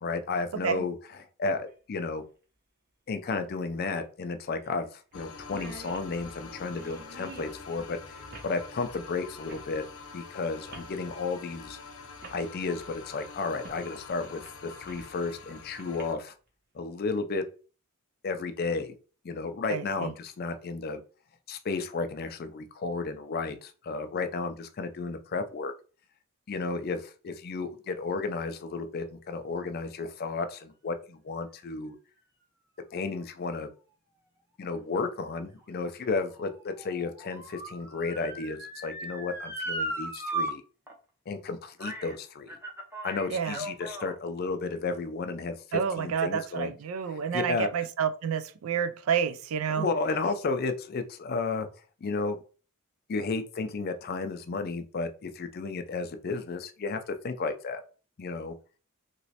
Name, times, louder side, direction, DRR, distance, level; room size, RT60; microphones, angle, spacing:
voice 1, 0.0-2.2 3.1-8.0 8.4-9.8 10.1-11.8 12.3-16.3 16.7-17.4 18.2-18.9 19.2-21.0 21.5-25.7 26.5-32.0 32.9-33.7 34.6-40.6 41.3-42.5 43.0-46.7 47.1-47.9 49.7-51.7 52.0-52.4 53.1-57.8 58.2-58.5, left 4 dB, 45° left, 0.4 m, -33 dB
sound 1, 1.7-1.8 3.5-3.6 4.0-4.1 4.6-4.8 5.1-5.2 5.4-7.6 8.3-8.5 9.5-9.7 10.7-10.9 11.8-11.9 12.2-12.4 13.6-13.8 14.2-15.2 15.8-16.0, right 2 dB, 45° right, 0.7 m, -47 dB
sound 2, 5.1-16.2, left 4 dB, 85° left, 0.6 m, -46 dB
voice 2, 19.7-20.1 43.3-43.6 45.7-49.9, right 7 dB, 70° right, 0.4 m, -29 dB
Motor vehicle (road) / Siren, 35.3-40.5 40.9-41.0 41.8-42.1 42.5-44.2 44.9-45.0, right 1 dB, 10° right, 0.5 m, -37 dB
3.1 x 2.9 x 2.8 m
head